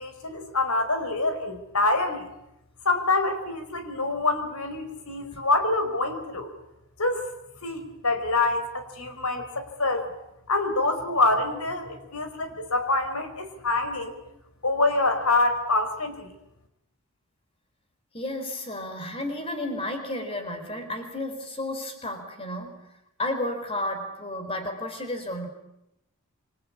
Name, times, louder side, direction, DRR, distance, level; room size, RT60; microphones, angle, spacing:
voice 1, 0.0-2.3 2.8-6.5 7.0-7.3 7.6-10.1 10.5-14.2 14.6-16.3, left 2 dB, 85° left, 9 dB, 4.5 m, -26 dB
voice 2, 18.1-22.8 23.2-25.5, left 1 dB, 25° left, 6 dB, 4.4 m, -32 dB
26.5 x 25.5 x 8.6 m, 0.86 s
head